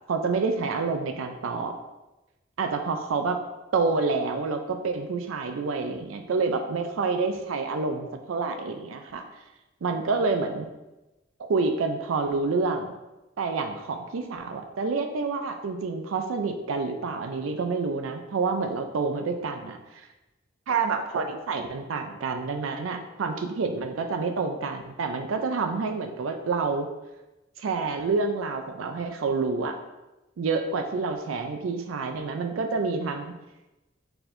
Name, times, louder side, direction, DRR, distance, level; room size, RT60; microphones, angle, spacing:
voice 1, 0.1-1.8 2.6-3.4 3.7-9.3 9.8-10.7 11.4-12.9 13.4-20.1 20.7-26.9 27.6-29.8 30.4-33.3, right 4 dB, 85° right, 6 dB, 0.4 m, -28 dB
4.4 x 4.2 x 2.6 m, 1.0 s
head